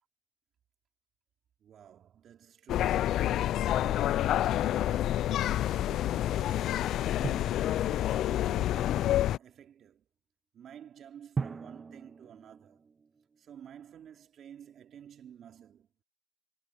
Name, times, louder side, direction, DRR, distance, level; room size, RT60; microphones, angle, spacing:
voice 1, 1.6-6.9 7.6-10.1 10.5-12.9 13.4-16.0, right 9 dB, 50° right, 2.7 m, -52 dB
sound 1, 2.7-9.4, left 12 dB, 60° left, 0.4 m, -28 dB
Drum, 7.2-8.7 11.4-13.5, right 5 dB, 30° right, 0.3 m, -40 dB
supercardioid pair, 95°, 0 cm